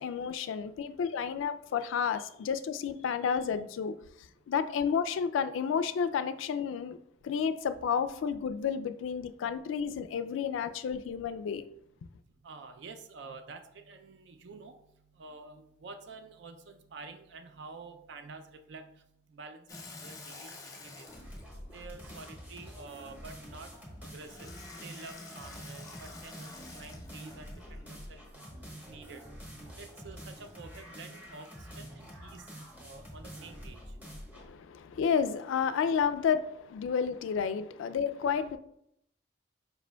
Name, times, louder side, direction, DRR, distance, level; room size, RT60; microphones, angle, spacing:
voice 1, 0.0-3.9 4.5-7.0 7.2-11.6 34.4-38.6, left 7 dB, 85° left, 0.3 m, -31 dB
voice 2, 12.4-14.7 15.2-18.9 19.3-21.1 21.7-23.7 24.1-24.5 24.8-28.5 28.9-29.2 29.8-31.5 31.8-32.4 32.8-33.8, right 4 dB, 65° right, 0.4 m, -48 dB
Water tap faucet / Sink (filling or washing), 19.7-22.7 24.2-27.9 30.0-32.5, left 3 dB, 15° left, 0.7 m, -50 dB
sound 1, 21.1-34.5, equal, 10° right, 1.0 m, -47 dB
5.0 x 4.8 x 2.2 m
head